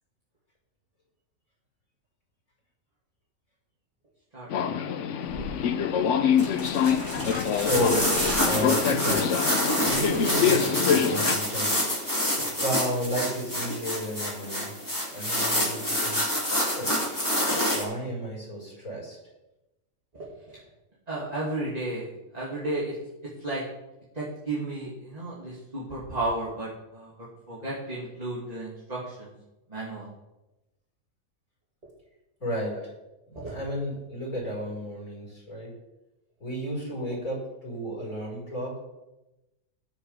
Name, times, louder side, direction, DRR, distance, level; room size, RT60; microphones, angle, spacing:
Subway metro underground, 4.5-11.4, left 8 dB, 65° left, 1.0 m, -25 dB
sound 1, 5.3-5.5 6.3-9.2 9.6-10.0 10.2-10.3, right 1 dB, 45° right, 5.2 m, -34 dB
voice 1, 7.5-8.1 8.4-9.5 9.8-11.7 12.6-14.7 15.1-15.8 16.0-16.2 16.8-16.9 17.7-19.2 32.4-32.8 33.3-35.7 36.4-38.8, equal, 85° left, -3 dB, 5.5 m, -32 dB
sound 2, 7.6-17.8, equal, 15° left, 2.8 m, -27 dB
voice 2, 21.1-22.9 23.4-23.6 24.1-27.1 27.5-29.3 29.7-30.1 33.3-33.6, right 2 dB, 30° right, -7 dB, 2.6 m, -33 dB
19.5 x 6.9 x 3.6 m, 0.99 s
omnidirectional pair, 1.4 m